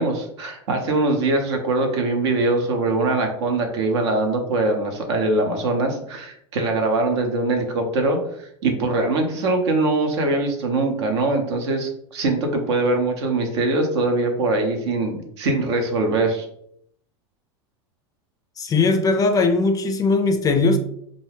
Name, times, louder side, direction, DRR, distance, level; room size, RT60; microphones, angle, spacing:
voice 1, 0.0-16.5, right 2 dB, 80° right, 4 dB, 0.7 m, -22 dB
voice 2, 18.6-20.8, left 3 dB, 25° left, 6 dB, 0.4 m, -19 dB
2.5 x 2.2 x 3.3 m, 0.69 s
hypercardioid pair, 105°, 14 cm